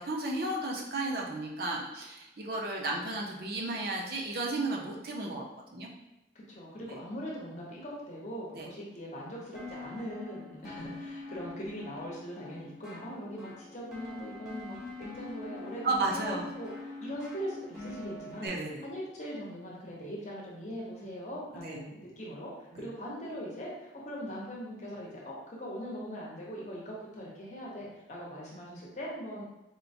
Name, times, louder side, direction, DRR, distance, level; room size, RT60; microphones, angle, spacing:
voice 1, 0.0-5.4 5.7-5.9 6.9-7.0 8.6-8.7 15.8-16.4 18.4-18.8 21.6-21.8 22.7-22.9, right 2 dB, 55° right, -1 dB, 0.6 m, -33 dB
voice 2, 6.3-18.5 18.8-29.4, equal, 40° left, -4 dB, 0.8 m, -41 dB
sound 1, 9.5-18.5, left 2 dB, ahead, 0.6 m, -44 dB
4.3 x 2.1 x 2.6 m, 0.98 s
head